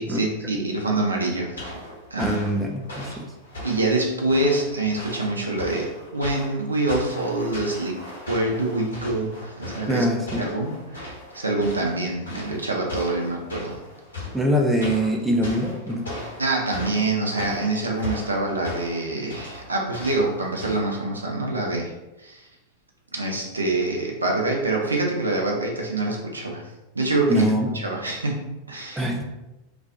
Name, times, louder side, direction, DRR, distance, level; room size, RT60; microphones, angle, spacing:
voice 1, 0.0-1.6 2.1-2.3 3.6-10.1 10.4-13.8 16.4-21.9 22.2-22.5 23.1-26.6 26.9-27.5 27.7-29.1, right 2 dB, 80° right, 0 dB, 0.4 m, -25 dB
sound 1, 1.6-20.8, left 1 dB, 75° left, 0.9 m, -38 dB
voice 2, 2.2-3.3 9.9-10.5 14.3-16.1 27.3-27.8 29.0-29.2, equal, 5° right, 0 dB, 0.3 m, -23 dB
2.3 x 2.1 x 2.5 m, 0.98 s
figure-of-eight pair, 90°, 0 cm